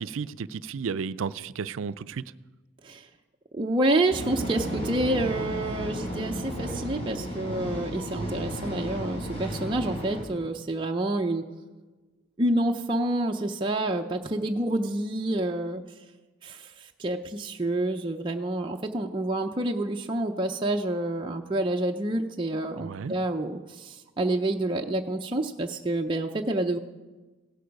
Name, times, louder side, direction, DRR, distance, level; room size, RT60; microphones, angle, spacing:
voice 1, 0.0-2.2 22.8-23.2, right 5 dB, 75° right, 0.4 m, -33 dB
voice 2, 3.5-11.4 12.4-15.8 16.4-16.7 17.0-26.8, right 1 dB, 25° right, 0.6 m, -28 dB
sound 1, 4.1-10.2, equal, 30° left, 3.5 m, -33 dB
16.5 x 11.5 x 5.3 m
head